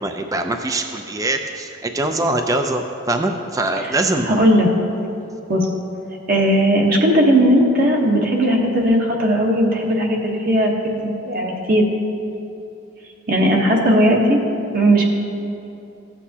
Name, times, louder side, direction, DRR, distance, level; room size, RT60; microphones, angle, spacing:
voice 1, 0.0-4.4, right 2 dB, 15° right, 5 dB, 0.4 m, -23 dB
voice 2, 4.3-4.7 5.5-5.6 6.3-10.9 11.3-11.8 13.3-14.4 14.7-15.1, equal, 45° right, -1 dB, 1.0 m, -17 dB
15.0 x 8.1 x 2.8 m, 2.8 s
head